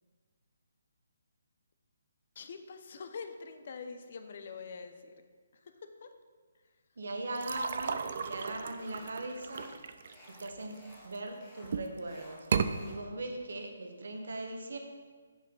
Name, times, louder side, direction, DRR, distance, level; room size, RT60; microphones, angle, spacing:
voice 1, 2.3-5.1 5.5-6.2, left 5 dB, 45° left, 7 dB, 0.6 m, -45 dB
voice 2, 7.0-9.7 10.4-12.5 12.8-14.8, right 2 dB, 75° right, 4 dB, 1.2 m, -39 dB
sound 1, 7.3-11.2 11.6-12.0 12.4-12.7, right 6 dB, 45° right, 0.4 m, -35 dB
sound 2, 8.2-8.5 8.8-9.1 9.4-10.4 10.7-11.1 11.4-13.0, left 1 dB, 15° left, 1.7 m, -57 dB
7.3 x 7.2 x 3.9 m, 1.5 s
hypercardioid pair, 170°, 0 cm